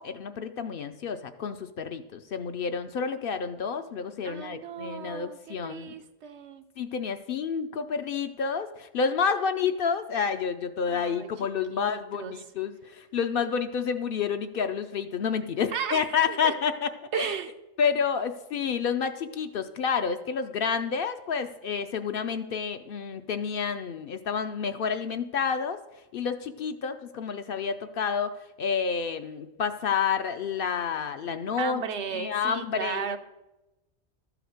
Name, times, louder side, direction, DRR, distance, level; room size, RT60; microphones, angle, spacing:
voice 1, 0.0-5.9 6.8-16.9 17.1-17.4 17.8-25.8 26.1-31.8 32.1-33.2, left 6 dB, 60° left, 8 dB, 0.7 m, -29 dB
voice 2, 4.2-6.6 10.9-11.3 11.7-12.3 15.7-16.5 17.1-17.5 31.6-33.2, right 7 dB, 80° right, 8 dB, 1.0 m, -35 dB
12.5 x 5.0 x 6.3 m, 1.0 s
omnidirectional pair, 1.2 m